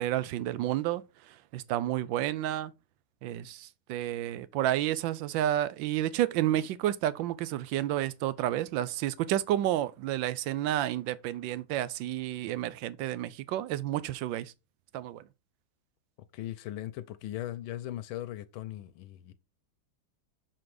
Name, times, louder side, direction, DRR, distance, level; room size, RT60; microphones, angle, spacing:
voice 1, 0.0-2.7 3.2-14.5 14.9-15.2, right 13 dB, 75° right, 1.3 m, -30 dB
voice 2, 16.3-19.3, left 13 dB, 85° left, 1.4 m, -38 dB
6.5 x 4.3 x 4.8 m
omnidirectional pair, 2.2 m